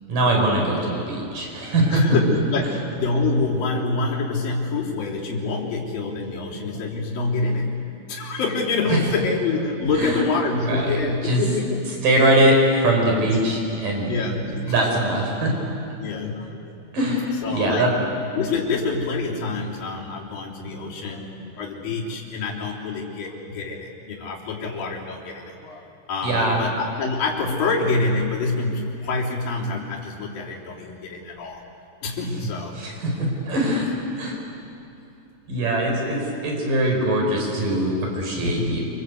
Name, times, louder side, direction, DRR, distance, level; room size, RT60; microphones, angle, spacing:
voice 1, 0.1-2.1 8.9-9.0 10.0-10.2 10.6-11.0 11.2-11.4 12.0-14.1 14.7-15.9 16.9-17.9 26.2-26.6 32.4-32.5 32.8-33.9 34.2-34.4 35.5-38.8, right 1 dB, 75° right, 0 dB, 6.5 m, -22 dB
voice 2, 1.9-11.8 12.2-12.4 13.0-13.5 14.0-15.5 16.0-16.7 17.4-17.9 18.4-31.6 32.0-32.8 38.4-38.8, left 3 dB, 85° left, -3 dB, 5.2 m, -26 dB
27.5 x 26.0 x 8.3 m, 2.8 s
omnidirectional pair, 3.9 m